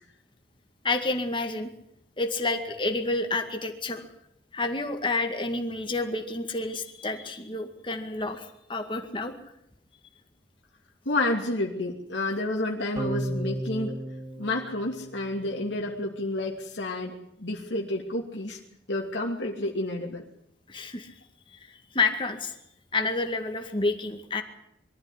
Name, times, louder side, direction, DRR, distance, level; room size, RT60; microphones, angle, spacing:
voice 1, 0.8-1.7 2.2-4.1 4.5-9.3 20.7-21.1 21.5-22.5 22.9-24.4, left 3 dB, 25° left, 5 dB, 2.1 m, -29 dB
voice 2, 11.0-13.9 14.4-18.6 18.9-20.2, left 2 dB, 80° left, 0 dB, 2.7 m, -30 dB
sound 1, 13.0-15.6, right 1 dB, 20° right, 2.9 m, -34 dB
23.0 x 13.5 x 9.9 m, 0.76 s
head